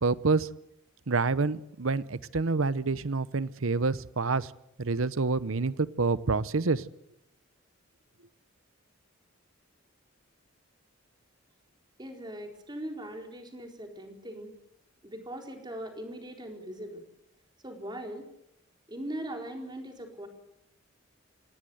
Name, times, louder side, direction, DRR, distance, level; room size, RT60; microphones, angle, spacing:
voice 1, 0.0-0.5 1.1-4.5 4.8-6.8, right 4 dB, 75° right, 17 dB, 0.8 m, -27 dB
voice 2, 12.0-14.5 15.0-17.0 17.6-18.3 18.9-20.3, right 1 dB, 20° right, 3 dB, 4.3 m, -40 dB
26.5 x 18.0 x 8.0 m, 0.79 s
head